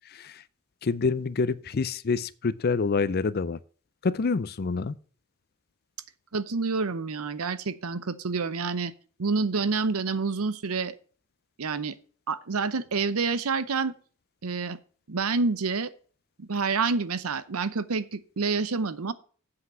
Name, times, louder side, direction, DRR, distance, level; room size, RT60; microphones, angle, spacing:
voice 1, 0.1-0.4 0.8-3.6 4.0-4.9, left 4 dB, 45° left, 0.5 m, -27 dB
voice 2, 6.3-8.9 9.2-10.9 11.6-11.9 12.3-13.9 14.4-14.8 15.1-15.9 16.4-19.1, right 4 dB, 85° right, 0.7 m, -28 dB
7.8 x 5.8 x 7.5 m
head